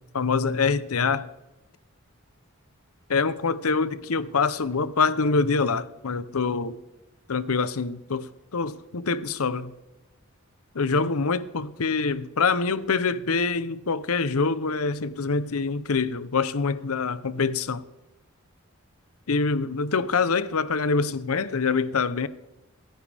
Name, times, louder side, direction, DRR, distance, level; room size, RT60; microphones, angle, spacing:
voice 1, 0.1-1.3 3.1-6.8 7.3-9.7 10.7-17.8 19.3-22.3, left 4 dB, 75° left, 0.8 m, -25 dB
27.0 x 10.5 x 3.5 m
head